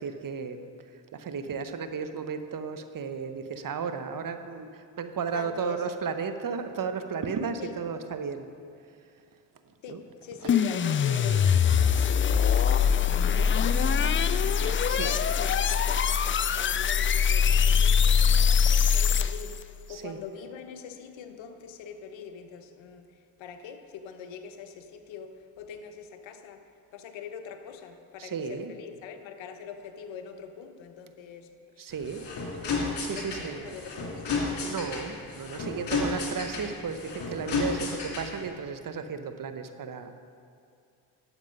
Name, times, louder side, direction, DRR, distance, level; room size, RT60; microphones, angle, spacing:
voice 1, 0.0-8.5 9.9-10.5 11.8-11.9 13.7-14.2 14.8-15.2 19.9-20.2 28.2-28.7 31.8-32.3 33.0-33.8 34.6-40.1, right 6 dB, 45° right, 8 dB, 0.8 m, -34 dB
voice 2, 5.3-5.8 7.6-7.7 9.8-14.6 14.9-31.9 33.1-34.8, left 6 dB, 80° left, 7 dB, 0.9 m, -43 dB
sound 1, 10.5-19.6, left 7 dB, 30° left, 0.4 m, -23 dB
sound 2, 31.9-38.5, left 4 dB, 65° left, 2.6 m, -32 dB
11.0 x 7.2 x 5.3 m, 2.5 s
supercardioid pair, 55°, 45 cm